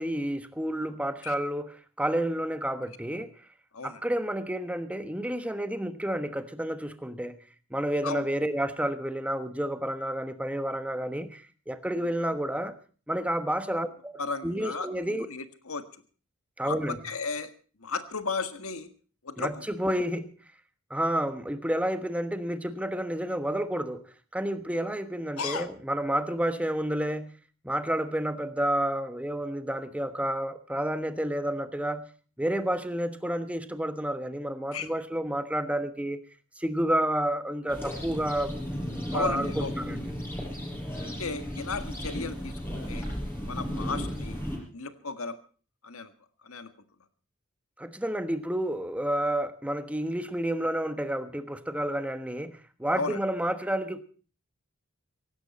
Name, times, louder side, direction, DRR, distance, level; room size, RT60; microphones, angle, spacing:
voice 1, 0.0-1.7 2.0-3.3 3.8-7.4 7.7-12.8 13.1-15.3 16.6-17.0 19.4-20.3 20.9-24.0 24.3-27.3 27.6-32.1 32.4-36.2 36.6-38.6 39.1-40.0 47.8-54.0, right 1 dB, 5° right, 1.2 m, -30 dB
voice 2, 14.2-14.9 15.3-15.8 16.6-17.5 17.8-18.9 19.2-19.6 25.4-25.7 34.7-34.9 39.1-39.7 41.2-43.1 43.5-44.4 44.7-45.3 45.8-46.1 46.4-46.7 52.9-53.2, left 4 dB, 75° left, 1.7 m, -34 dB
sound 1, 37.7-44.6, equal, 10° left, 5.6 m, -34 dB
17.0 x 16.5 x 4.2 m
head